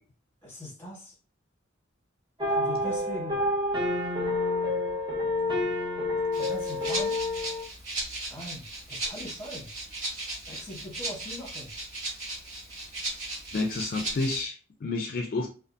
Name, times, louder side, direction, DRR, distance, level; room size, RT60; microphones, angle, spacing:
voice 1, 0.4-1.1 2.5-3.4 6.3-7.1 8.3-9.7 10.5-11.7, left 1 dB, 10° left, -3 dB, 1.0 m, -41 dB
sound 1, 2.4-7.6, left 2 dB, 25° right, 0.6 m, -28 dB
Rattle (instrument), 6.3-14.4, right 2 dB, 40° right, 1.3 m, -37 dB
voice 2, 13.5-15.5, left 3 dB, 45° left, 2 dB, 0.4 m, -30 dB
2.5 x 2.4 x 2.5 m, 0.37 s
head